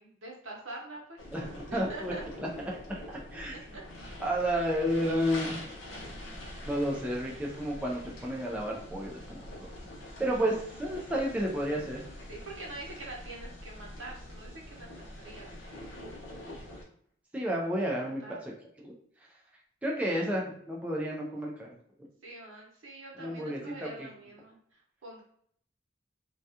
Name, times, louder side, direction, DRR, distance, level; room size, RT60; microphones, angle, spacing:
voice 1, 0.0-1.2 1.7-2.2 3.5-3.8 12.3-16.0 17.9-18.4 22.2-25.2, right 2 dB, 85° right, -1 dB, 0.8 m, -45 dB
sound 1, 1.2-16.8, left 1 dB, 80° left, 0.7 m, -45 dB
voice 2, 1.3-2.5 2.9-3.6 4.2-5.7 6.7-9.7 10.2-12.0 17.3-18.5 18.8-18.9 19.8-21.7 23.2-24.1, equal, 5° right, -3 dB, 0.4 m, -31 dB
2.3 x 2.2 x 2.7 m, 0.65 s
head